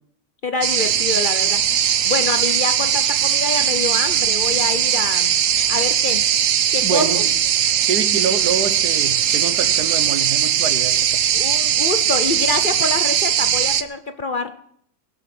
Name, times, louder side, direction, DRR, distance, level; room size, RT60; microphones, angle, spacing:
voice 1, 0.4-5.3 5.7-6.2 6.7-7.2 11.3-14.5, left 3 dB, 50° left, 9 dB, 0.6 m, -26 dB
sound 1, 0.6-13.8, right 10 dB, 60° right, 1.0 m, -19 dB
voice 2, 6.8-7.3 7.8-11.2, right 7 dB, 80° right, 11 dB, 1.6 m, -26 dB
20.0 x 8.0 x 6.0 m, 0.68 s
omnidirectional pair, 1.7 m